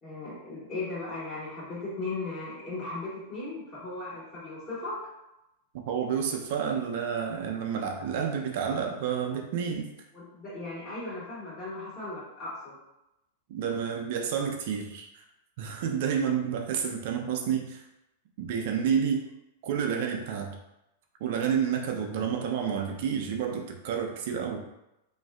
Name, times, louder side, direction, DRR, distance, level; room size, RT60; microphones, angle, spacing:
voice 1, 0.0-4.9 10.1-12.8, left 2 dB, 35° left, -9 dB, 1.3 m, -37 dB
voice 2, 5.9-9.9 13.5-15.2 15.6-17.8 18.4-19.3 19.6-20.6 21.2-24.7, right 7 dB, 60° right, 3 dB, 0.4 m, -30 dB
2.5 x 2.3 x 2.3 m, 0.90 s
hypercardioid pair, 105°, 0 cm